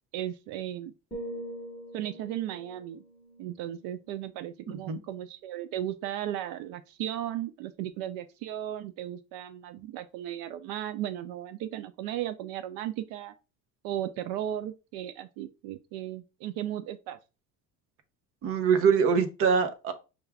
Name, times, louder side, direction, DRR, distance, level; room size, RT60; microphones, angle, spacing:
voice 1, 0.1-0.9 1.9-3.0 3.4-13.3 13.8-17.2, right 12 dB, 75° right, 0.5 m, -36 dB
sound 1, 1.1-5.1 5.4-5.8, equal, 10° left, 1.2 m, -44 dB
voice 2, 4.7-5.0 18.4-19.9, right 6 dB, 40° right, 0.7 m, -24 dB
6.1 x 2.3 x 3.3 m
cardioid pair, 175°, 36 cm